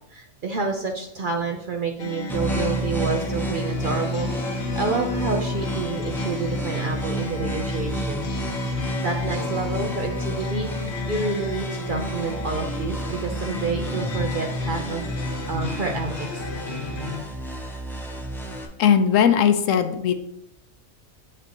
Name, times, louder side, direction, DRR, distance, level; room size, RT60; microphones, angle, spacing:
voice 1, 0.1-8.3 9.0-15.0 15.5-16.4, right 4 dB, 55° right, 2 dB, 0.6 m, -29 dB
sound 1, 2.0-17.2, left 3 dB, 60° left, 1.2 m, -34 dB
sound 2, 2.3-18.6, equal, ahead, 0.6 m, -30 dB
voice 2, 18.8-20.1, left 8 dB, 75° left, 8 dB, 1.0 m, -18 dB
8.2 x 5.1 x 2.9 m, 0.81 s
omnidirectional pair, 1.4 m